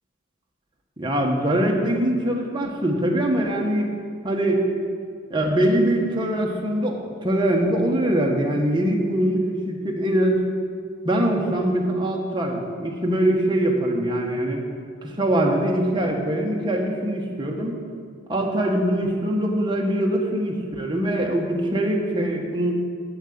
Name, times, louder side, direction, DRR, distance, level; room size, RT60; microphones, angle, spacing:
voice 1, 1.0-3.9 4.2-4.7 5.3-10.5 11.0-14.6 15.0-17.8 18.3-22.8, right 1 dB, 25° right, 0 dB, 1.3 m, -23 dB
7.7 x 7.7 x 8.6 m, 2.2 s
head